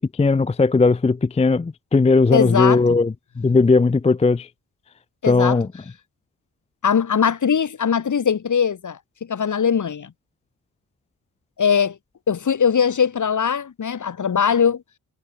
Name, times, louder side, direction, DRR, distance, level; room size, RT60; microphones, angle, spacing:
voice 1, 0.0-4.5 5.3-5.7, left 3 dB, 15° left, 0.5 m, -18 dB
voice 2, 2.3-3.0 5.2-5.6 6.8-10.1 11.6-12.0 12.3-14.8, left 7 dB, 45° left, 1.4 m, -21 dB
cardioid pair, 75°, 42 cm